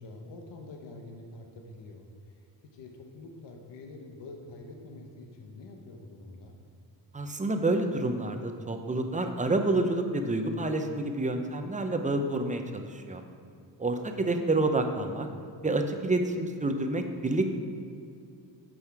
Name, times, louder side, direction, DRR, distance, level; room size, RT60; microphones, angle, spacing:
voice 1, 0.0-2.1 2.7-6.6, left 2 dB, 85° left, 2 dB, 1.1 m, -46 dB
voice 2, 7.1-13.2 13.8-15.3 15.6-17.5, right 2 dB, 20° right, 6 dB, 0.6 m, -28 dB
8.9 x 6.3 x 4.7 m, 2.4 s
cardioid pair, 125°, 42 cm